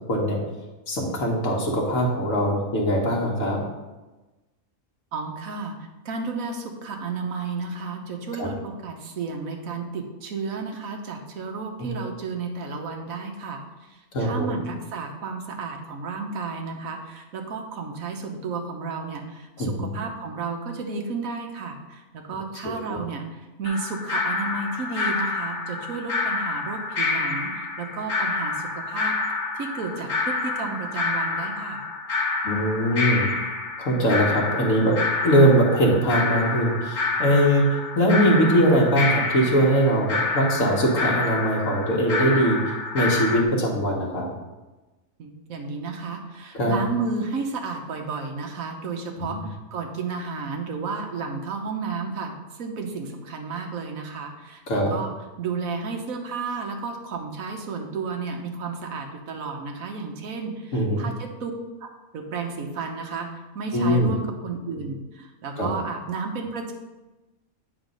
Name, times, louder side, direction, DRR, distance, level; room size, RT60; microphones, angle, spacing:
voice 1, 0.9-3.6 8.4-8.5 11.8-11.9 14.1-14.6 19.6-19.9 22.6-23.0 32.4-33.3 33.8-35.0 35.2-37.6 38.0-42.6 42.9-44.3 46.5-46.8 49.2-49.4 54.7-55.0 60.7-61.1 63.7-64.1 65.6-65.7, equal, 70° left, -2 dB, 1.7 m, -21 dB
voice 2, 5.1-5.8 6.0-13.6 14.2-29.1 29.5-31.8 45.2-55.1 55.4-61.5 61.8-66.7, right 4 dB, 85° right, 3 dB, 1.4 m, -32 dB
sound 1, 23.6-43.4, left 3 dB, 45° left, 0.8 m, -28 dB
9.0 x 4.0 x 5.3 m, 1.1 s
omnidirectional pair, 1.4 m